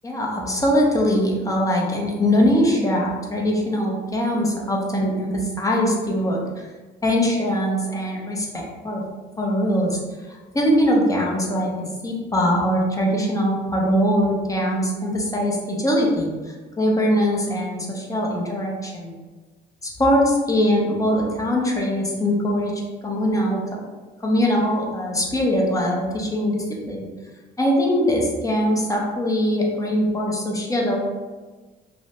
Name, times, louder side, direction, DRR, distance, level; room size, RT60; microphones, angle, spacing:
voice 1, 0.0-6.4 7.0-9.0 9.4-10.0 10.3-11.7 12.0-19.1 19.8-22.7 23.0-23.6 24.2-27.0 27.6-31.0, equal, 15° left, -2 dB, 0.6 m, -22 dB
2.4 x 2.0 x 2.9 m, 1.3 s
cardioid pair, 90°, 20 cm